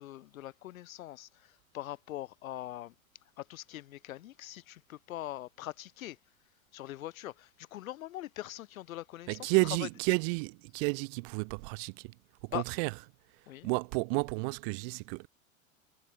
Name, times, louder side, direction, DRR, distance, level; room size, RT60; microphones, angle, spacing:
voice 1, 0.0-2.9 3.4-6.2 6.7-9.9 12.5-12.7 13.5-13.7, left 14 dB, 75° left, 0.7 m, -42 dB
voice 2, 9.3-13.0 13.3-15.3, right 33 dB, 45° right, 0.4 m, -32 dB
hypercardioid pair, 90°, 41 cm